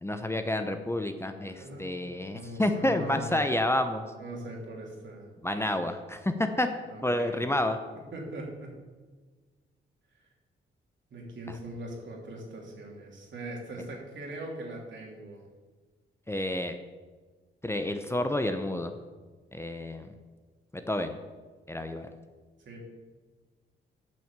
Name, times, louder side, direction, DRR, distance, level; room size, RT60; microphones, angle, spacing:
voice 1, 0.0-4.0 5.4-6.7 7.0-7.8 16.3-16.8 17.6-18.9 19.5-20.1 20.7-21.2 21.7-22.1, left 1 dB, 10° left, 7 dB, 0.8 m, -29 dB
voice 2, 1.5-3.4 4.2-5.3 6.9-7.4 8.1-8.7 10.1-10.2 11.1-15.4 22.6-22.8, right 1 dB, 65° right, -1 dB, 3.1 m, -41 dB
8.9 x 6.1 x 7.4 m, 1.4 s
cardioid pair, 75°, 21 cm